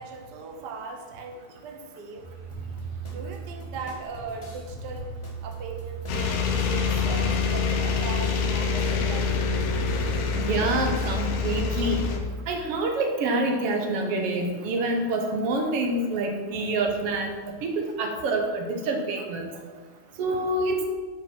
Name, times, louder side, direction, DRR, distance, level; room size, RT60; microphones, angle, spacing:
voice 1, 0.0-2.3 3.0-5.1 5.4-9.3, right 4 dB, 80° right, 2 dB, 0.9 m, -38 dB
sound 1, 2.2-7.3, right 6 dB, 15° left, 2.6 m, -39 dB
sound 2, 2.5-11.2, equal, 35° left, 0.4 m, -44 dB
sound 3, 6.1-12.2, left 5 dB, 85° left, 2.5 m, -26 dB
voice 2, 10.4-12.1 12.5-17.3 17.6-19.6 20.2-20.8, right 2 dB, 65° right, 3 dB, 1.7 m, -27 dB
9.7 x 5.2 x 5.9 m, 1.4 s
omnidirectional pair, 3.5 m